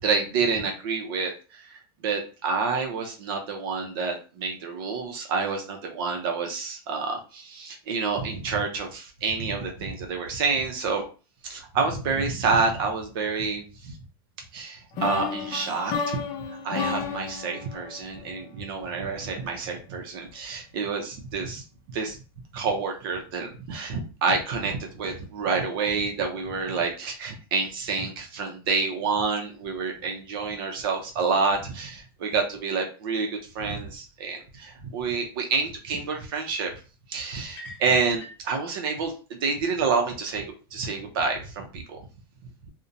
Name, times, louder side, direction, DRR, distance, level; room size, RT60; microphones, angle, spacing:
voice 1, 0.0-11.0 11.4-14.0 14.5-16.2 16.6-22.2 22.5-36.7 37.1-40.4 40.7-42.1, right 4 dB, 65° right, 3 dB, 0.6 m, -28 dB
sound 1, 15.0-18.9, left 5 dB, 30° left, 0.4 m, -32 dB
sound 2, 37.4-38.5, left 1 dB, 60° left, 0.7 m, -45 dB
2.7 x 2.1 x 2.5 m, 0.34 s
supercardioid pair, 160°, 13 cm